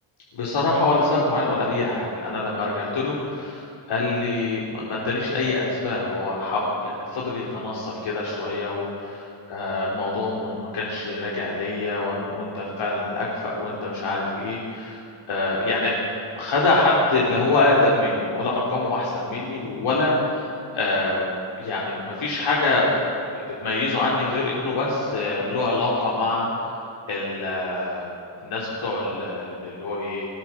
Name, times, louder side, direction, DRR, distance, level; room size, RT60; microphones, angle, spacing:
voice 1, 0.3-15.0 15.3-16.0 16.4-21.3 21.6-22.9 23.3-26.7 27.1-28.1 28.4-30.3, left 2 dB, 90° left, -5 dB, 3.8 m, -25 dB
21.5 x 16.5 x 7.5 m, 2.6 s
wide cardioid pair, 130°, 47 cm